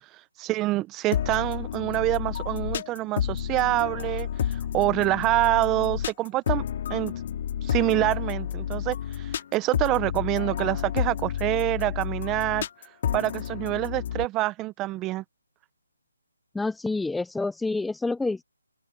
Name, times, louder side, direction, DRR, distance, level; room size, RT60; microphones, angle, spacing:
voice 1, 0.4-6.6 6.9-7.1 7.6-12.7 13.1-15.2, right 17 dB, 15° right, 1.0 m, -26 dB
sound 1, 1.1-14.3, left 9 dB, 35° left, 3.0 m, -30 dB
voice 2, 16.5-18.4, left 3 dB, 5° left, 0.6 m, -28 dB
open air
hypercardioid pair, 165°, 0 cm